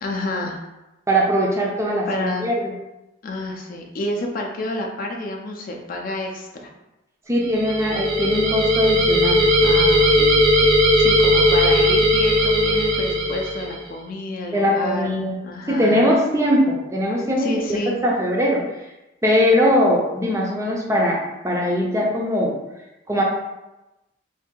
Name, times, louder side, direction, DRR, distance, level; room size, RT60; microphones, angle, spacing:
voice 1, 0.0-0.7 2.1-2.5 3.2-6.7 9.6-16.0 17.4-18.0, left 2 dB, 45° left, 1 dB, 0.4 m, -29 dB
voice 2, 1.1-2.7 7.3-9.4 14.5-15.4 15.7-18.6 19.2-22.5 23.1-23.2, equal, 15° right, -2 dB, 0.4 m, -20 dB
sound 1, 7.4-13.8, equal, 75° right, 0.8 m, -18 dB
2.7 x 2.6 x 3.7 m, 0.99 s
head